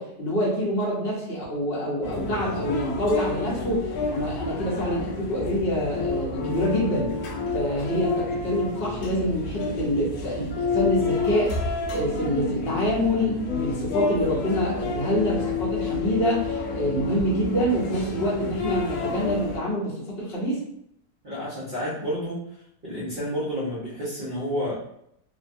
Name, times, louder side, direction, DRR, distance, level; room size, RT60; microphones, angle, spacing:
voice 1, 0.0-7.1 7.5-11.5 11.9-20.6, equal, 45° left, -5 dB, 0.9 m, -26 dB
sound 1, 2.0-19.6, left 3 dB, 75° left, 0.8 m, -29 dB
voice 2, 21.2-22.4 22.8-24.8, equal, 50° right, -9 dB, 0.6 m, -30 dB
2.9 x 2.1 x 2.6 m, 0.74 s
omnidirectional pair, 1.9 m